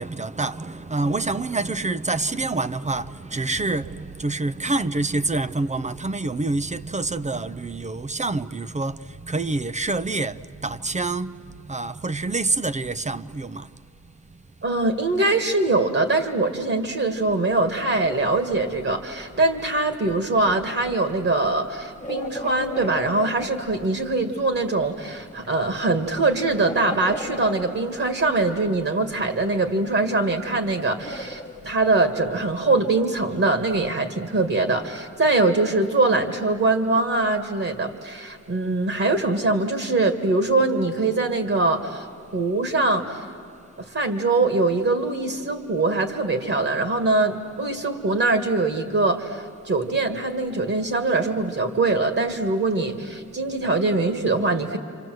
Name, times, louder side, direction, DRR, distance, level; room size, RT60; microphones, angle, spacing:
voice 1, 0.0-11.4 11.6-13.7, right 3 dB, 25° right, 0.6 m, -27 dB
voice 2, 14.6-42.1 42.3-43.2 43.8-54.8, right 2 dB, 50° right, 2.0 m, -23 dB
sound 1, 17.3-17.4 17.6-24.8 25.3-28.8 29.4-33.9, left 1 dB, 25° left, 1.4 m, -38 dB
29.0 x 26.5 x 7.8 m
wide cardioid pair, 130°, 29 cm